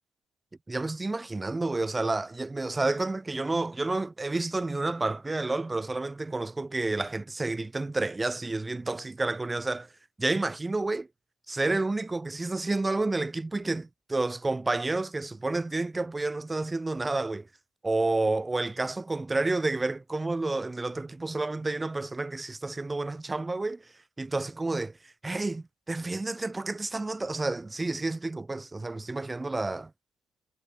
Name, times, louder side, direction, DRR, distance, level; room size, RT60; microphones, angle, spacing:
voice 1, 0.7-9.9 10.2-11.1 11.5-17.5 17.8-29.9, right 2 dB, 20° right, 2.0 m, -30 dB
cardioid pair, 90°, 0 cm